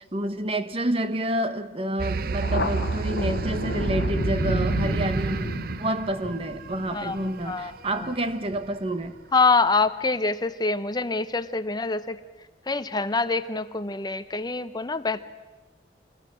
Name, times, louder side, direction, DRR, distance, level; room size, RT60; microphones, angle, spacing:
voice 1, 0.0-5.5 5.8-9.2, right 1 dB, 35° right, 1.3 m, -28 dB
sound 1, 2.0-6.9, right 3 dB, 55° right, 0.6 m, -28 dB
Thunder, 2.4-9.5, left 2 dB, 65° left, 1.3 m, -34 dB
voice 2, 7.5-8.0 9.3-12.2 12.7-15.2, left 3 dB, 25° left, 0.7 m, -25 dB
27.0 x 20.5 x 6.2 m
head